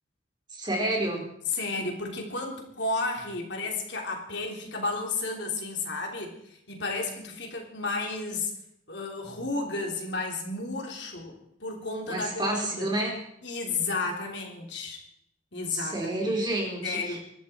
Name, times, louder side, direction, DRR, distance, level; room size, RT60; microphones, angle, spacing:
voice 1, 0.5-1.2 12.1-13.1 15.7-17.2, right 1 dB, 25° right, -1 dB, 4.3 m, -29 dB
voice 2, 1.5-8.5 8.9-12.9 13.4-15.0 15.5-16.3 16.8-17.2, left 3 dB, 65° left, 1 dB, 3.6 m, -32 dB
24.5 x 12.5 x 4.6 m, 0.75 s
head